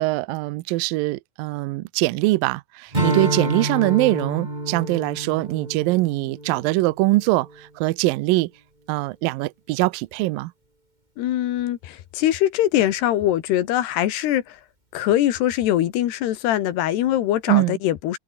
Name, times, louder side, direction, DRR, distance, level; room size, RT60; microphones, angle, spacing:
voice 1, 0.0-8.5 8.9-10.5 17.5-17.8, right 20 dB, 80° right, 2.1 m, -22 dB
Strum, 2.9-7.6, right 1 dB, 10° right, 3.8 m, -28 dB
voice 2, 11.2-14.6 14.9-18.2, left 12 dB, 80° left, 3.6 m, -22 dB
omnidirectional pair, 4.7 m